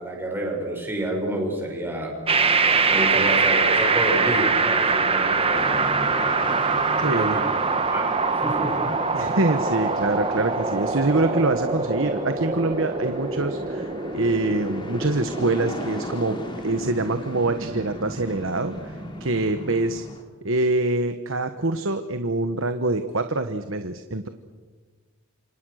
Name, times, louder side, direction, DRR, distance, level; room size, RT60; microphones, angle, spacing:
voice 1, 0.0-2.1 2.9-5.6 7.0-7.4 7.8-8.0 8.4-8.9, right 1 dB, 10° right, 0 dB, 6.2 m, -29 dB
sound 1, 2.3-20.1, right 4 dB, 25° right, 1.6 m, -24 dB
sound 2, 5.5-20.2, left 1 dB, 20° left, 3.1 m, -39 dB
voice 2, 7.0-7.4 9.1-16.4 16.6-20.0 20.4-24.3, right 2 dB, 60° right, 8 dB, 1.3 m, -25 dB
28.5 x 26.5 x 6.5 m, 1.4 s
head